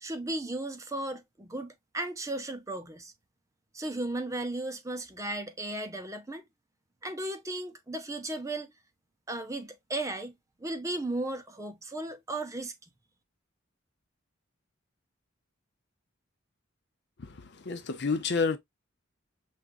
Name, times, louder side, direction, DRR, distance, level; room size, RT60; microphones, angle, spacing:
voice 1, 0.0-3.1 3.7-6.4 7.0-8.7 9.3-10.3 10.6-12.7, right 2 dB, 15° right, 0.5 m, -35 dB
voice 2, 17.2-18.6, left 4 dB, 55° left, 0.6 m, -30 dB
6.4 x 2.4 x 2.5 m
head